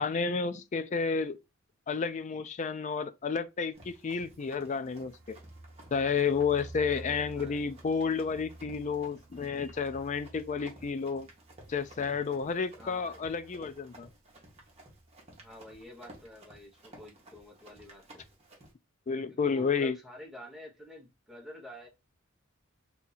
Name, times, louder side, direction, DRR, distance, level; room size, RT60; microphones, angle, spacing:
voice 1, 0.0-1.4 1.9-5.4 5.9-11.3 11.7-14.1 19.1-20.0, left 5 dB, 35° left, 0.3 m, -31 dB
Run, 3.7-18.7, right 1 dB, 30° right, 1.0 m, -55 dB
sound 1, 4.6-14.0 14.3-14.4 14.7-15.2, right 1 dB, 55° right, 0.6 m, -51 dB
voice 2, 6.8-7.8 12.8-13.2 15.4-18.2 19.4-21.9, left 1 dB, ahead, 1.0 m, -49 dB
2.8 x 2.7 x 3.9 m
head